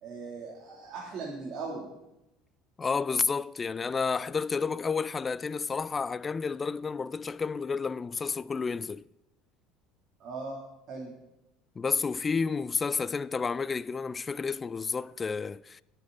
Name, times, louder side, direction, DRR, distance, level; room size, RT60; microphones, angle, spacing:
voice 1, 0.0-1.9 10.2-10.6 10.9-11.1, right 3 dB, 50° right, 2.9 m, -38 dB
voice 2, 2.8-9.1 11.8-15.8, left 5 dB, 25° left, 0.3 m, -31 dB
20.0 x 8.0 x 4.0 m
supercardioid pair, 105°, 0 cm